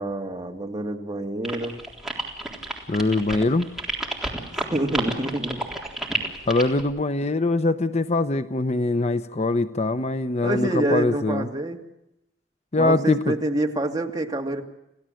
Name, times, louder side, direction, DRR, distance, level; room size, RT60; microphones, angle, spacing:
voice 1, 0.0-1.8 4.6-5.6 10.4-11.8 12.8-14.6, right 1 dB, 20° right, 2 dB, 2.4 m, -27 dB
sound 1, 1.4-6.8, right 1 dB, ahead, 3.8 m, -30 dB
voice 2, 2.9-3.7 6.5-11.5 12.7-13.3, left 2 dB, 40° left, 11 dB, 0.8 m, -23 dB
29.0 x 17.0 x 7.8 m, 0.87 s
head